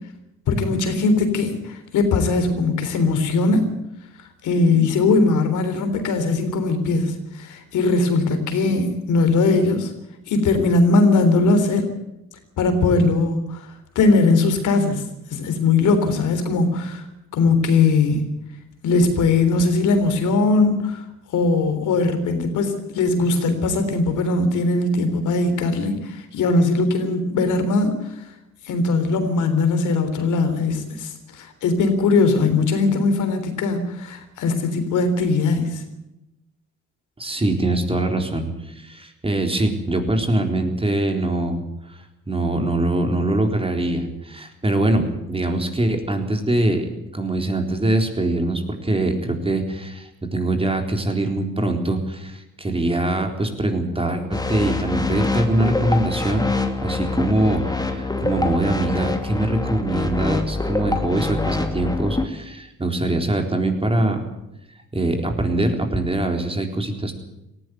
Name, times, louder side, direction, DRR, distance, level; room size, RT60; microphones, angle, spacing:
voice 1, 0.5-3.6 4.4-9.9 10.3-11.8 12.6-13.6 14.0-15.0 15.3-17.0 17.3-18.3 18.8-21.0 21.3-27.9 28.7-35.8, left 3 dB, 80° left, 9 dB, 3.7 m, -20 dB
voice 2, 37.2-56.5 56.8-64.2 64.9-67.1, right 1 dB, 20° right, 4 dB, 4.0 m, -23 dB
sound 1, 54.3-62.3, left 3 dB, 15° left, 2.6 m, -25 dB
18.5 x 15.0 x 9.4 m, 0.90 s
cardioid pair, 90°, 30 cm